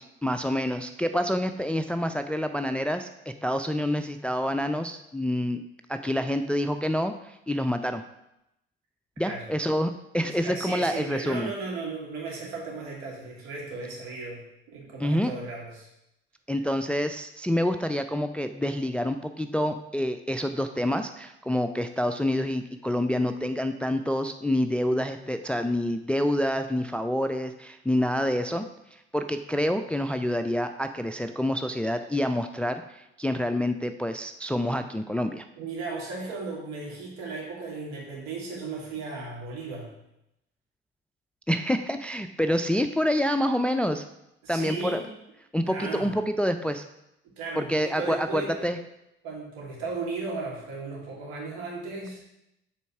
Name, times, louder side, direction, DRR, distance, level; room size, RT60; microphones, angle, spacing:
voice 1, 0.0-5.6 5.9-8.0 9.2-11.5 15.0-15.3 16.5-28.7 29.1-35.4 41.5-44.0 44.5-45.0 45.5-46.8 47.6-48.8, equal, 5° left, 8 dB, 0.4 m, -27 dB
voice 2, 10.4-15.9 16.5-16.7 35.6-39.9 44.4-45.1 45.6-46.1 47.4-48.7 49.2-52.2, right 3 dB, 65° right, -3 dB, 2.6 m, -36 dB
8.2 x 4.3 x 5.7 m, 0.85 s
figure-of-eight pair, 50°, 30 cm